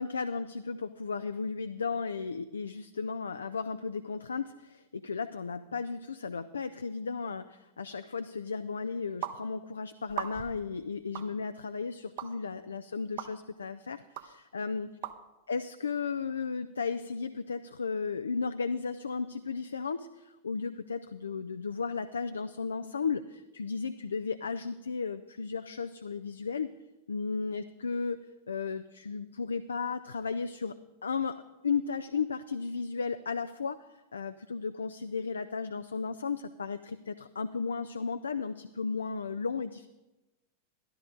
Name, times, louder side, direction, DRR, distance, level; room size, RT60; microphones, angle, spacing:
voice 1, 0.0-14.9 15.5-26.7 27.1-28.2 28.5-30.7 31.0-31.4 31.6-39.9, left 5 dB, 75° left, 11 dB, 0.4 m, -34 dB
sound 1, 9.2-9.4 10.1-10.6 11.2-11.3 12.2-12.3 13.2-13.3 14.2-14.3 15.0-15.2, right 11 dB, 50° right, 0.8 m, -37 dB
13.0 x 12.0 x 3.8 m, 1.0 s
figure-of-eight pair, 90°, 0 cm